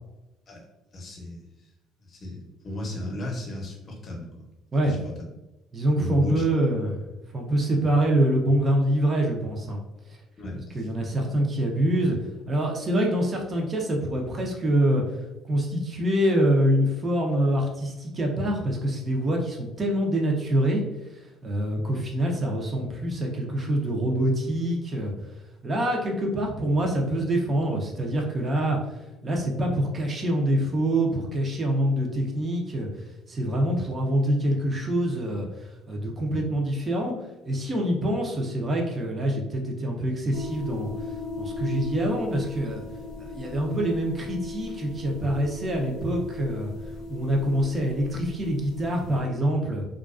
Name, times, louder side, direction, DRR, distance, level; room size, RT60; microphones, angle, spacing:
voice 1, 0.9-1.7 2.0-4.5 4.8-5.1 6.0-6.6 10.4-10.9, left 1 dB, 40° left, 0 dB, 0.7 m, -35 dB
voice 2, 5.7-7.0 7.3-9.8 10.1-10.2 10.7-12.2 12.5-15.0 15.5-20.8 21.4-25.1 25.6-28.8 29.2-32.9 33.3-37.1 37.4-40.9 41.4-42.8 43.2-46.7 47.1-49.8, right 1 dB, 30° right, 1 dB, 0.6 m, -25 dB
sound 1, 40.3-49.2, left 2 dB, 80° left, 0.5 m, -37 dB
2.3 x 2.2 x 2.3 m, 1.0 s
cardioid pair, 105°, 0 cm